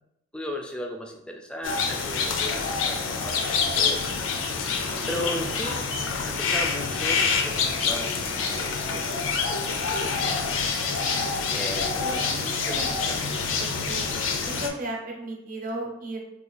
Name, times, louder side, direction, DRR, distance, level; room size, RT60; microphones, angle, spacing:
voice 1, 0.3-4.0 5.1-5.9 6.3-10.7 11.5-13.3, left 1 dB, 5° left, 2 dB, 0.3 m, -37 dB
sound 1, 1.6-14.7, left 5 dB, 75° left, 0.4 m, -27 dB
voice 2, 12.0-14.1 14.4-16.2, right 1 dB, 45° right, 0 dB, 0.7 m, -36 dB
2.8 x 2.3 x 3.9 m, 0.82 s
head